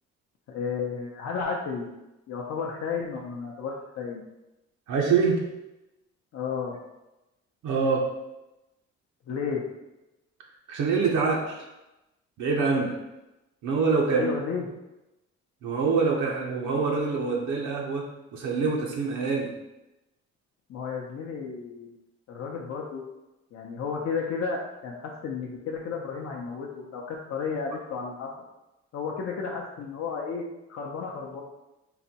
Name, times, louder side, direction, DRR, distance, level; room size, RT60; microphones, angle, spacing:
voice 1, 0.5-1.9 2.3-4.2 6.3-6.8 9.3-9.6 14.1-14.7 20.7-21.9 22.3-23.0 23.5-28.3 28.9-30.4 30.7-31.4, left 5 dB, 55° left, -2 dB, 0.6 m, -32 dB
voice 2, 4.9-5.4 7.6-8.1 10.7-11.7 12.4-13.0 13.6-14.3 15.6-19.6, right 4 dB, 75° right, -1 dB, 0.7 m, -25 dB
3.9 x 2.2 x 2.8 m, 0.96 s
cardioid pair, 90°, 30 cm